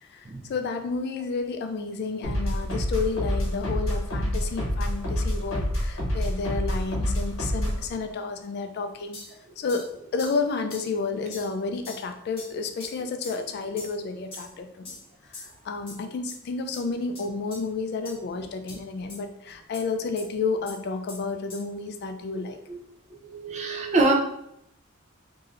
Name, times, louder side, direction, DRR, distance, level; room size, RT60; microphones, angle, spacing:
voice 1, 0.0-9.2 9.6-9.9 10.1-15.0 15.2-22.6, left 4 dB, 50° left, 6 dB, 0.3 m, -31 dB
sound 1, 2.2-7.9, equal, 70° left, 0.9 m, -27 dB
sound 2, 9.1-9.3 9.7-9.9 10.2-10.4 10.7-10.9 11.3-11.5 11.8-12.0 12.4-12.5 12.8-12.9 13.2-13.4 13.8-14.0 14.3-14.5 14.8-15.0 15.3-15.5 15.9-16.0 16.3-16.4 16.7-16.8 17.1-17.2 17.5-17.6 18.0-18.1 18.7-18.8 19.1-19.2 19.7-19.8 20.2-20.3 20.7-20.8 21.1-21.2 21.5-21.6, left 3 dB, 25° left, 1.3 m, -42 dB
voice 2, 23.2-24.1, right 2 dB, 30° right, 1 dB, 0.5 m, -24 dB
3.1 x 2.7 x 2.5 m, 0.76 s
head